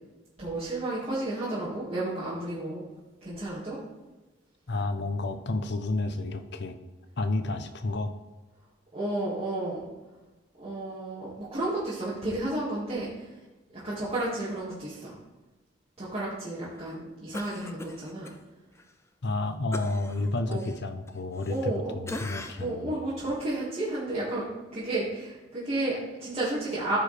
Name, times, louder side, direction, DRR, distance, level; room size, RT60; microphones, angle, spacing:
voice 1, 0.4-2.8 3.2-3.8 8.9-9.9 10.6-13.3 13.8-15.1 16.0-18.3 20.5-20.6 21.5-21.9 22.6-24.4 24.7-27.0, right 2 dB, 30° right, -10 dB, 1.9 m, -32 dB
voice 2, 4.7-6.8 7.2-8.1 19.2-22.9, left 2 dB, 60° left, 9 dB, 0.7 m, -31 dB
Cough, 17.3-18.4 18.8-18.9 19.7-21.8 22.1-22.8 23.3-23.4, left 2 dB, 15° left, 0.5 m, -41 dB
14.0 x 5.0 x 3.3 m, 1.1 s
head